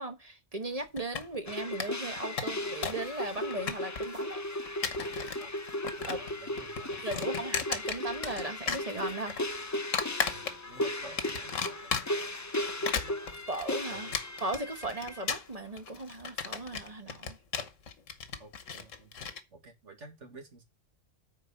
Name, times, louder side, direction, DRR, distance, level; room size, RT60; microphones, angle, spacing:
voice 1, 0.0-4.4 6.1-6.2 7.0-9.4 10.2-10.4 13.5-14.1 14.4-17.4, right 2 dB, 30° right, 1.2 m, -37 dB
sound 1, 1.0-1.5 1.8-1.9 2.2-3.1 3.3-4.2 4.7-5.4 5.7-6.3 6.6-8.4 8.7-9.4 9.9-10.8 11.2-12.3 12.7-19.4, left 6 dB, 85° left, 1.5 m, -35 dB
sound 2, 1.5-15.3, left 1 dB, 20° left, 0.4 m, -36 dB
voice 2, 6.0-7.5 10.3-12.2 12.8-13.1 13.9-14.2 18.4-19.2 19.5-20.6, right 2 dB, 70° right, 2.2 m, -51 dB
8.7 x 4.6 x 7.2 m
omnidirectional pair, 1.3 m